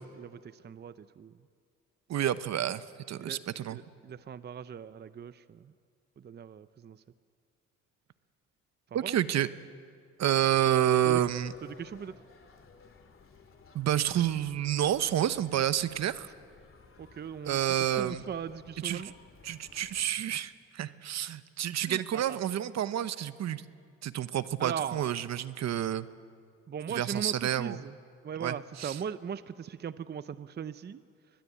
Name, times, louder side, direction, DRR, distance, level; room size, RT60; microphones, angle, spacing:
voice 1, 0.2-1.3 3.2-5.7 6.2-7.0 8.9-9.2 11.1-11.2 11.6-12.1 17.0-17.6 18.0-19.1 21.8-22.4 24.6-25.0 26.7-28.0 28.2-31.0, right 7 dB, 35° right, 14 dB, 0.6 m, -39 dB
voice 2, 2.1-3.8 8.9-9.5 10.2-11.5 13.7-16.3 17.5-18.2 18.8-19.1 19.4-23.6 24.0-26.1 26.9-27.8 28.4-29.0, right 11 dB, 60° right, 14 dB, 0.9 m, -29 dB
sound 1, 10.4-20.1, left 5 dB, 45° left, 2.9 m, -57 dB
23.0 x 21.0 x 8.4 m, 2.2 s
cardioid pair, 90°, 30 cm